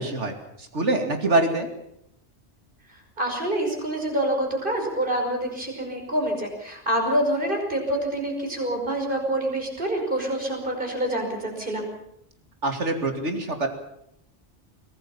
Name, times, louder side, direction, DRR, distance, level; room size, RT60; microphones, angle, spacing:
voice 1, 0.0-1.7 12.6-13.7, right 2 dB, 80° right, 6 dB, 2.9 m, -25 dB
voice 2, 3.2-11.9, right 1 dB, 45° right, 2 dB, 5.6 m, -26 dB
24.0 x 18.0 x 7.2 m, 0.75 s
omnidirectional pair, 1.2 m